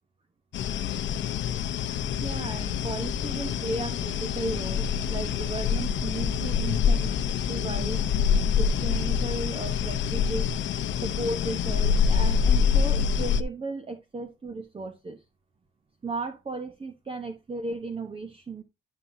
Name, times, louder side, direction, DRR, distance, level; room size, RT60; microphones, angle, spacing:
sound 1, 0.5-13.4, left 7 dB, 70° left, 0.9 m, -26 dB
voice 1, 2.2-7.1 7.5-8.1 8.6-10.5 11.0-15.2 16.0-18.6, right 3 dB, 30° right, 1.2 m, -35 dB
12.0 x 5.7 x 2.7 m
cardioid pair, 90°, 20 cm